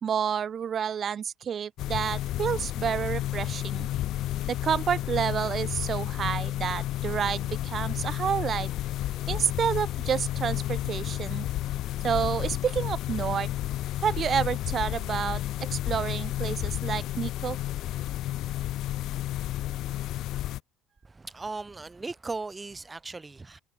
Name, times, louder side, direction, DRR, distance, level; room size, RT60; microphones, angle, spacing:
voice 1, 0.0-3.9 4.5-8.7 9.3-11.5 12.0-13.5 14.0-17.6, right 8 dB, 45° right, 1.8 m, -29 dB
sound 1, 1.8-20.6, left 14 dB, 65° left, 2.1 m, -31 dB
voice 2, 21.0-23.6, right 3 dB, 20° right, 8.0 m, -37 dB
supercardioid pair, 80°, 0 cm